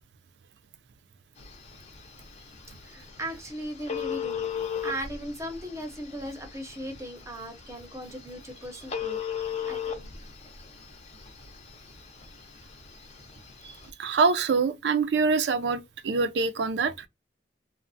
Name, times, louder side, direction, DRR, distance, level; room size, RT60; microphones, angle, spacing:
Telephone, 1.4-13.9, left 8 dB, 35° left, 0.6 m, -38 dB
voice 1, 2.8-4.5 4.8-9.2 9.7-10.1, right 1 dB, 15° right, 0.6 m, -37 dB
voice 2, 14.0-17.1, right 4 dB, 65° right, 0.4 m, -25 dB
3.1 x 2.1 x 2.5 m
head